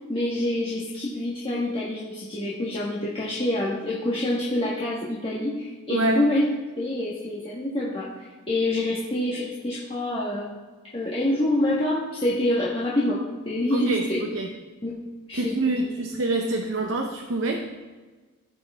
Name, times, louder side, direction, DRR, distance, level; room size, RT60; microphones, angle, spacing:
voice 1, 0.1-6.4 6.8-10.5 10.9-14.2 14.8-15.6, left 1 dB, 25° left, -6 dB, 1.4 m, -26 dB
voice 2, 5.9-6.3 13.7-14.5 15.3-17.7, right 2 dB, 60° right, 1 dB, 0.9 m, -26 dB
15.5 x 6.4 x 3.5 m, 1.3 s
head